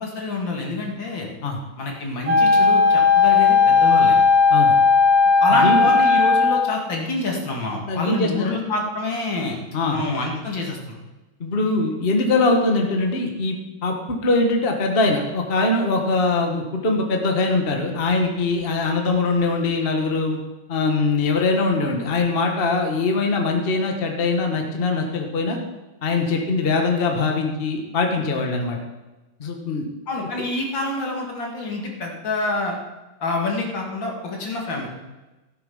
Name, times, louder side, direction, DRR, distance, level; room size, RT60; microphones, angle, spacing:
voice 1, 0.0-1.3 1.8-4.2 5.4-9.6 9.9-11.0 30.1-32.8 33.2-34.9, left 2 dB, 65° left, 0 dB, 2.9 m, -27 dB
Wind instrument woodwind instrument, 2.3-6.7, left 4 dB, 65° right, 1.9 m, -16 dB
voice 2, 5.5-5.9 7.9-8.6 9.7-10.0 11.4-20.4 20.7-25.6 26.0-28.8 29.4-29.9, left 3 dB, 30° left, 2 dB, 1.5 m, -22 dB
15.0 x 8.6 x 5.5 m, 1.1 s
omnidirectional pair, 2.2 m